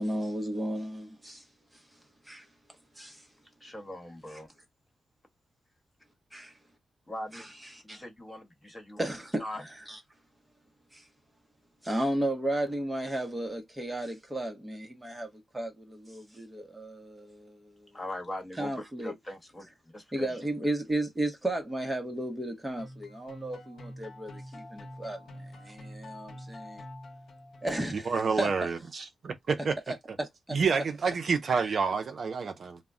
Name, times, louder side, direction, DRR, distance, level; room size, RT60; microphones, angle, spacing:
voice 1, 0.0-1.5 2.3-2.5 3.0-3.2 6.3-6.5 7.3-7.4 7.7-8.0 9.0-9.4 9.9-10.0 10.9-11.0 11.8-17.9 18.6-19.1 20.1-26.8 27.6-28.7 29.9-30.6 31.6-31.7, right 1 dB, 15° right, 0.8 m, -34 dB
voice 2, 3.6-4.5 7.1-7.5 7.8-9.0 9.4-9.6 17.9-20.4, left 1 dB, 15° left, 1.2 m, -41 dB
sound 1, 22.8-28.0, left 1 dB, 85° left, 0.7 m, -46 dB
voice 3, 28.1-29.8 30.5-32.8, right 5 dB, 60° right, 0.5 m, -28 dB
2.2 x 2.0 x 3.6 m
cardioid pair, 105°, 0 cm